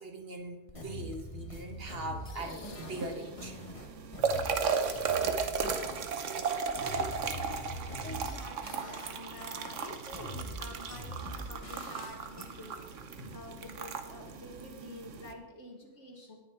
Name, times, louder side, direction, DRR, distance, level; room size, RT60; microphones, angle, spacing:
voice 1, 0.0-3.6 13.2-13.4, right 1 dB, 55° right, 4 dB, 1.6 m, -41 dB
sound 1, 0.7-6.1 6.4-9.1 9.4-12.5, equal, 30° left, 1.4 m, -43 dB
sound 2, 2.2-3.6 4.7-5.9 6.2-6.3 7.9-8.0, left 4 dB, 55° left, 1.1 m, -52 dB
sound 3, 2.4-15.3, right 5 dB, 90° right, 1.3 m, -35 dB
voice 2, 8.0-12.8 13.3-16.4, left 1 dB, 75° left, 2 dB, 2.2 m, -48 dB
18.5 x 6.5 x 4.7 m, 1.0 s
omnidirectional pair, 1.2 m